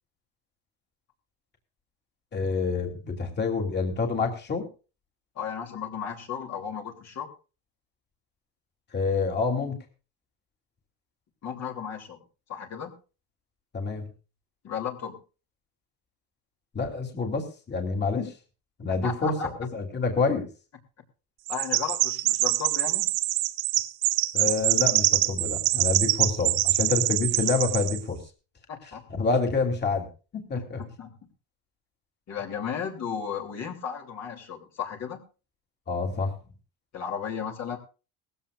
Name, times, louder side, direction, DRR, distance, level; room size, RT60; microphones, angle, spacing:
voice 1, 2.3-4.7 8.9-9.8 13.7-14.1 16.7-18.3 18.8-20.5 24.3-28.2 28.8-30.1 30.5-30.8 35.9-36.3, left 4 dB, 30° left, 3 dB, 3.2 m, -27 dB
voice 2, 5.3-7.3 11.4-12.2 12.5-12.9 14.6-15.2 19.0-19.5 21.5-23.1 28.7-29.0 30.5-31.2 32.3-35.2 36.9-37.8, left 7 dB, 45° left, 1 dB, 3.2 m, -34 dB
Chirp tweet, 21.5-28.0, right 19 dB, 85° right, 1.1 m, -25 dB
19.5 x 16.0 x 2.5 m, 0.34 s
cardioid pair, 135°, 36 cm